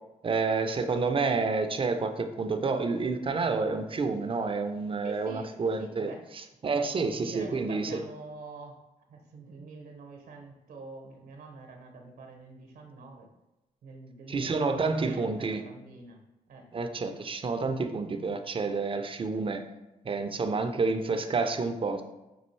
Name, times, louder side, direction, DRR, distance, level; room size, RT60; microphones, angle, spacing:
voice 1, 0.2-8.0 14.3-15.6 16.7-19.6 20.0-22.0, right 4 dB, 35° right, 7 dB, 0.5 m, -29 dB
voice 2, 5.0-5.5 5.8-6.2 7.0-8.8 9.1-13.3 13.8-16.2 16.5-16.7, right 3 dB, 70° right, 3 dB, 0.8 m, -46 dB
5.3 x 2.4 x 3.1 m, 0.99 s
supercardioid pair, 55°, 16 cm